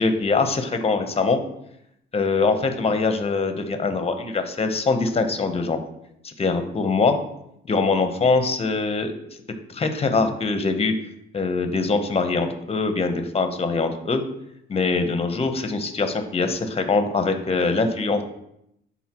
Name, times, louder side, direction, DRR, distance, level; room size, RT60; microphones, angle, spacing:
voice 1, 0.0-1.4 2.1-5.8 6.2-7.2 7.7-9.1 9.7-10.9 11.3-14.2 14.7-18.2, left 4 dB, 30° left, 7 dB, 0.9 m, -23 dB
10.0 x 4.1 x 3.0 m, 0.77 s
cardioid pair, 90°, 20 cm